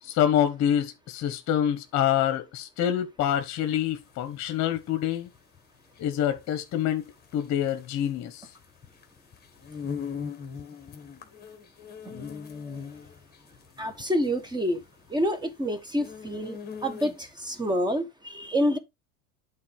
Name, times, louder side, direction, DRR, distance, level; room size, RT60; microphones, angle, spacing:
voice 1, 0.0-5.3 6.0-7.0 7.3-8.5, left 10 dB, 35° left, 1.4 m, -26 dB
sound 1, 3.3-17.5, left 6 dB, 20° left, 1.7 m, -41 dB
voice 2, 13.8-14.8 15.1-16.6 16.8-18.8, equal, 10° right, 1.2 m, -27 dB
8.6 x 4.0 x 4.9 m
supercardioid pair, 130°, 46 cm